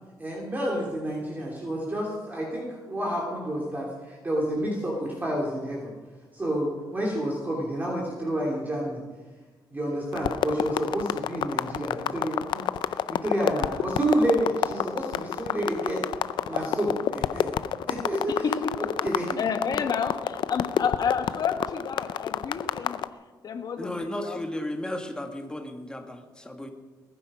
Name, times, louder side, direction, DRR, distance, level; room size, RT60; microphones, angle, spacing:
voice 1, 0.2-5.9 6.3-9.0 9.7-12.7 13.1-16.1 16.5-17.5 17.9-18.4 19.0-19.4, right 1 dB, 20° right, -3 dB, 3.0 m, -29 dB
sound 1, 10.1-23.1, left 10 dB, 75° left, 0.6 m, -28 dB
voice 2, 18.4-19.1 19.4-23.0 23.4-24.4, left 6 dB, 55° left, 6 dB, 1.7 m, -30 dB
voice 3, 23.8-26.7, left 1 dB, 10° left, 5 dB, 1.9 m, -34 dB
21.0 x 9.9 x 5.0 m, 1.3 s
cardioid pair, 95°, 8 cm